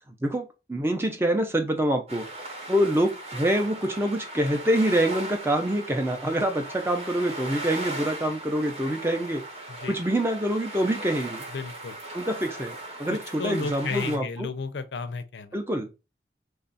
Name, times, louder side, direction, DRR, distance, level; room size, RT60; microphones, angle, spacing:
voice 1, 0.2-2.2 2.7-9.4 9.9-11.4 12.1-14.5 15.5-15.9, right 1 dB, 15° right, 0.5 m, -26 dB
sound 1, 2.1-14.2, right 2 dB, 35° right, 0.9 m, -38 dB
voice 2, 11.5-12.0 13.1-15.6, left 4 dB, 85° left, 0.5 m, -33 dB
3.3 x 2.4 x 3.9 m
head